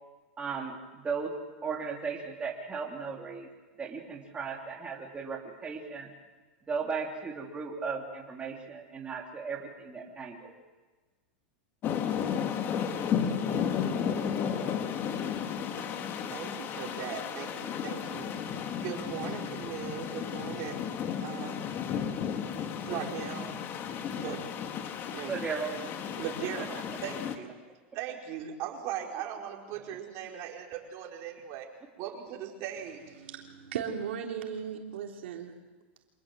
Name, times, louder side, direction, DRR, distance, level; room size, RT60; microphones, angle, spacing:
voice 1, 0.4-1.3 1.6-3.5 3.8-6.1 6.7-10.5 25.3-25.7 26.6-26.7, right 5 dB, 15° right, 0 dB, 3.3 m, -36 dB
sound 1, 11.8-27.4, left 7 dB, 35° left, 2.1 m, -33 dB
voice 2, 16.3-18.3 18.8-20.8 21.2-21.6 22.9-23.6 24.1-24.4 25.1-25.3 26.2-27.5 27.9-31.7 32.0-33.2, right 9 dB, 50° right, 1 dB, 4.9 m, -39 dB
voice 3, 33.2-35.5, right 7 dB, 85° right, 1 dB, 3.6 m, -37 dB
26.5 x 19.5 x 7.7 m, 1.3 s
supercardioid pair, 135°, 6 cm